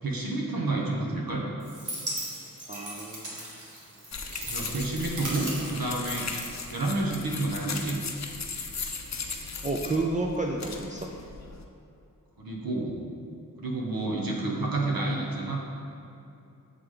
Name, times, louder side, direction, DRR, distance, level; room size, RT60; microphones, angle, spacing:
voice 1, 0.0-1.4 4.4-6.3 6.7-8.0 12.4-12.9 13.6-15.6, right 2 dB, 75° right, -2 dB, 1.0 m, -29 dB
sound 1, 1.6-7.3, right 1 dB, 55° right, 1.4 m, -38 dB
voice 2, 2.7-3.4 9.6-11.1, right 2 dB, 20° right, 0 dB, 0.4 m, -30 dB
sound 2, 4.1-11.6, left 4 dB, 50° left, 0.6 m, -37 dB
7.9 x 3.3 x 3.8 m, 2.7 s
cardioid pair, 45°, 35 cm